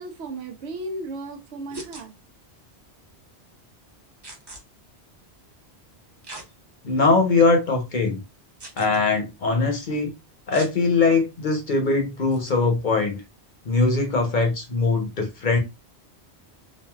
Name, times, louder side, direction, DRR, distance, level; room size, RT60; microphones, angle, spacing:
voice 1, 0.0-2.1, right 2 dB, 85° right, 1.0 m, -34 dB
sound 1, 1.7-2.0 4.2-4.6 6.2-6.5 7.1-7.2 8.6-9.0 10.5-10.7 12.3-12.5, right 2 dB, 30° right, 0.6 m, -40 dB
voice 2, 6.8-8.2 8.8-10.1 10.5-13.2 13.6-15.6, left 3 dB, 50° left, 0.9 m, -21 dB
3.1 x 2.4 x 2.3 m
omnidirectional pair, 1.1 m